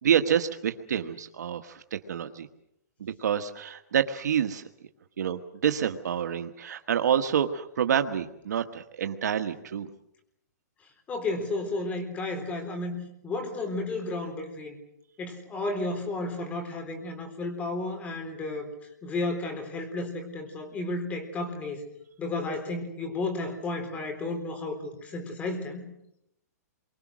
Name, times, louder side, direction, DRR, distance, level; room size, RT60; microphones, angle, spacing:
voice 1, 0.0-2.5 3.0-4.7 5.2-9.9, right 8 dB, 80° right, 8 dB, 1.5 m, -28 dB
voice 2, 11.1-13.0 13.2-14.8 15.2-18.7 19.0-21.8 22.2-25.9, left 2 dB, 15° left, 7 dB, 3.9 m, -32 dB
28.5 x 24.0 x 6.3 m, 0.79 s
hypercardioid pair, 160°, 9 cm